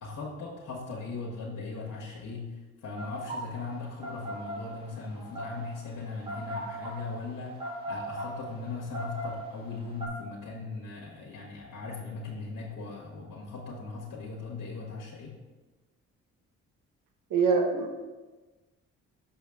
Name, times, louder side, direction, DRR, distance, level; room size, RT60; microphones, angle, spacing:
voice 1, 0.0-2.5 2.8-15.3, left 3 dB, 65° left, -2 dB, 1.1 m, -39 dB
sound 1, 3.0-10.1, right 1 dB, 15° right, 1.6 m, -38 dB
voice 2, 17.3-18.1, right 5 dB, 70° right, 4 dB, 0.9 m, -25 dB
5.8 x 5.5 x 3.4 m, 1.2 s
supercardioid pair, 55°, 33 cm